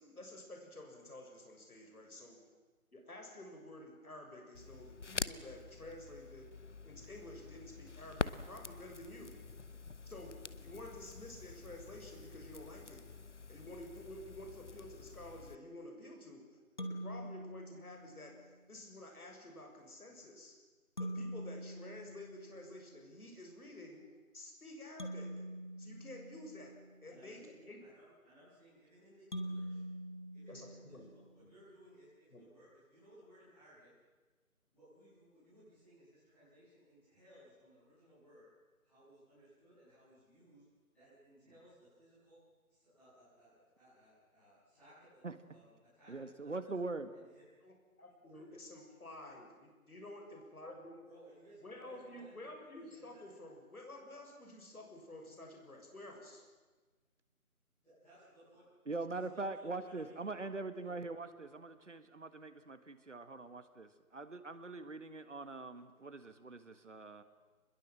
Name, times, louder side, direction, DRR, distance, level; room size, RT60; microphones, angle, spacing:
voice 1, 0.0-2.4 2.9-6.5 6.8-9.4 10.1-10.3 10.6-13.0 13.5-18.3 18.7-20.5 21.0-24.0 24.3-25.3 25.8-26.7 27.0-27.8 30.5-31.1 31.4-31.5 32.3-32.4 47.6-51.1 51.6-56.4, left 1 dB, 80° left, 2 dB, 6.9 m, -51 dB
Crackle, 4.5-15.6, left 4 dB, 55° left, 0.8 m, -46 dB
sound 1, 16.8-18.5 21.0-23.0 25.0-27.1 29.3-31.4, equal, 35° left, 1.6 m, -45 dB
voice 2, 27.0-29.8 30.3-33.9 34.7-38.5 38.8-40.6 40.9-42.4 42.7-46.7 47.1-47.5 48.3-48.4 51.0-53.3 57.8-58.6 59.1-60.4 60.8-61.0, equal, ahead, -17 dB, 7.9 m, -62 dB
voice 3, 46.1-47.1 58.9-67.2, right 3 dB, 55° right, 10 dB, 1.8 m, -43 dB
24.5 x 21.5 x 7.6 m, 1.3 s
figure-of-eight pair, 180°, 43 cm